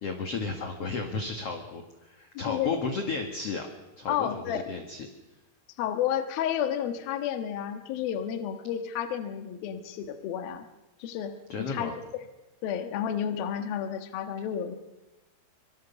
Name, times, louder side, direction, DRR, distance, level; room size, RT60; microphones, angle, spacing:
voice 1, 0.0-3.7 4.0-5.1 11.5-12.0, left 4 dB, 45° left, 4 dB, 2.3 m, -33 dB
voice 2, 2.3-2.7 4.1-4.6 5.8-10.7 11.0-12.0 12.6-14.8, left 9 dB, 70° left, 7 dB, 3.2 m, -31 dB
25.5 x 24.0 x 7.1 m, 1.0 s
omnidirectional pair, 4.7 m